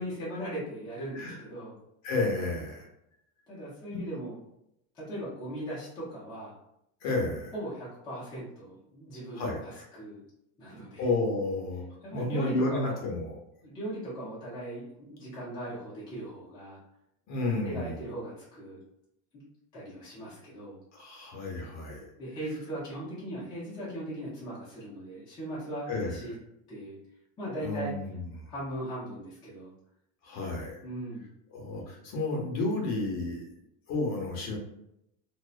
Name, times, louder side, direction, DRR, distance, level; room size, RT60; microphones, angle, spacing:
voice 1, 0.0-1.7 3.5-4.4 4.9-6.5 7.5-10.2 10.6-11.1 12.0-13.0 13.6-16.8 17.6-18.8 19.3-19.4 19.7-20.8 22.2-26.4 26.7-27.0 27.4-27.9 28.5-29.7 30.8-31.3, right 1 dB, 10° left, -9 dB, 0.4 m, -38 dB
voice 2, 2.0-2.9 3.9-4.1 7.0-7.5 9.3-9.9 11.0-11.8 12.1-13.4 17.3-18.0 20.9-22.1 25.9-26.2 27.6-28.5 30.2-30.8 31.5-33.5 33.9-34.6, left 2 dB, 40° left, -1 dB, 0.8 m, -31 dB
2.6 x 2.0 x 2.4 m, 0.79 s
cardioid pair, 175°, 41 cm